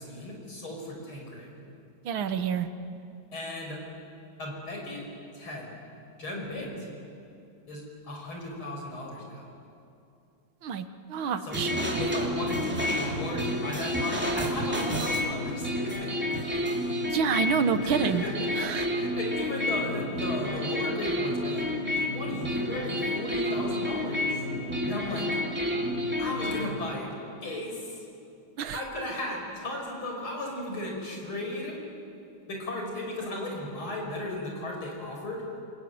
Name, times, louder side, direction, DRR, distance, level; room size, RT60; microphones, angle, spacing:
voice 1, 0.0-1.5 3.3-3.8 4.4-5.0 5.3-5.7 6.2-6.9 7.7-9.5 11.4-16.6 17.5-21.7 22.0-24.4 24.8-25.3 26.2-27.1 27.4-28.0 28.7-31.8 32.5-35.4, left 1 dB, 75° left, 0 dB, 6.3 m, -36 dB
voice 2, 2.1-2.7 10.6-11.7 17.1-18.2 18.5-18.9 28.6-28.8, right 7 dB, 70° right, 10 dB, 1.8 m, -28 dB
sound 1, 11.5-26.7, left 1 dB, 5° right, 2.6 m, -30 dB
27.5 x 21.0 x 9.5 m, 2.6 s
omnidirectional pair, 2.3 m